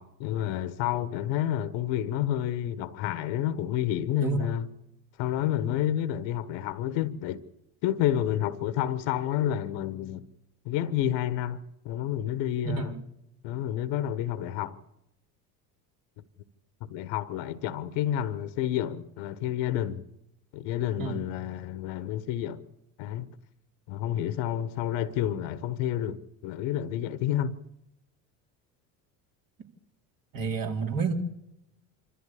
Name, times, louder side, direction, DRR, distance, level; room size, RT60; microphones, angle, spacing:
voice 1, 0.0-4.7 5.2-7.4 7.8-10.2 10.6-12.9 13.4-14.8 16.8-20.0 20.5-22.6 23.0-23.3 23.9-27.6, left 11 dB, 65° left, 1.4 m, -29 dB
voice 2, 4.2-4.5 12.8-13.0 21.0-21.3 30.3-31.1, right 5 dB, 45° right, 4.0 m, -30 dB
26.5 x 14.0 x 8.6 m
hypercardioid pair, 70°, 48 cm